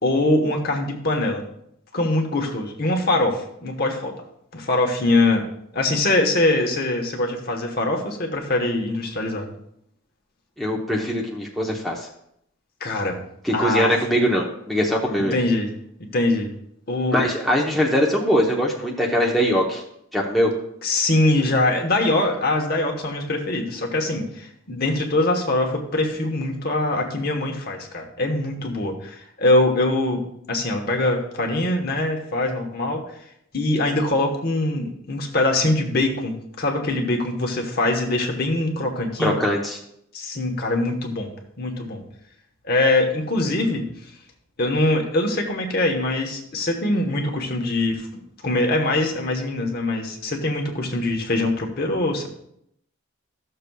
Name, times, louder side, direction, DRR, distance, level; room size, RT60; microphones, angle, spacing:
voice 1, 0.0-1.4 1.9-4.1 4.5-5.4 5.7-9.5 12.8-13.2 13.5-13.9 15.3-15.7 16.0-16.5 16.9-17.2 20.8-30.2 30.5-33.0 33.5-39.4 40.1-41.3 41.6-42.0 42.6-43.8 44.6-48.1 48.4-52.3, left 2 dB, 45° left, 1 dB, 1.1 m, -23 dB
voice 2, 10.6-12.1 13.4-15.4 17.1-19.8 20.1-20.5 39.2-39.8, equal, ahead, -3 dB, 0.9 m, -21 dB
14.0 x 6.7 x 2.3 m, 0.74 s
head